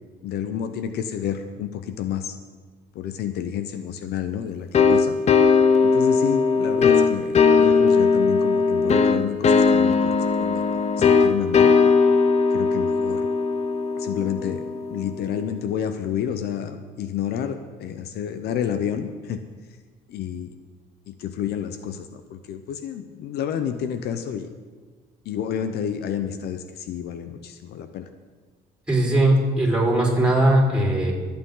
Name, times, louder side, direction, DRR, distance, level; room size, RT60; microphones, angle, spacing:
voice 1, 0.2-2.4 2.9-5.2 5.8-11.8 12.5-13.3 14.0-14.6 14.9-19.4 20.1-20.5 21.1-24.5 25.2-28.1, left 9 dB, 75° left, 9 dB, 0.9 m, -30 dB
sound 1, 4.7-15.2, left 5 dB, 40° left, 0.8 m, -19 dB
voice 2, 28.9-31.1, right 1 dB, 5° right, -4 dB, 4.8 m, -19 dB
24.0 x 8.9 x 3.9 m, 1.4 s
cardioid pair, 110°, 17 cm